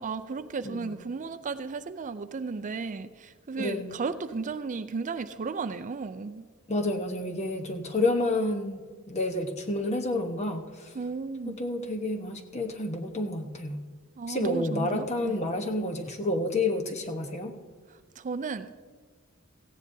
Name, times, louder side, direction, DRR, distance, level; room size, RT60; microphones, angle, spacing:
voice 1, 0.0-6.4 11.0-11.6 14.2-15.3 18.2-18.7, right 4 dB, 35° right, 11 dB, 0.4 m, -34 dB
voice 2, 3.6-4.0 6.7-10.9 11.4-13.8 14.3-17.5, left 2 dB, 30° left, 5 dB, 1.0 m, -30 dB
17.5 x 15.0 x 2.7 m, 1.5 s
head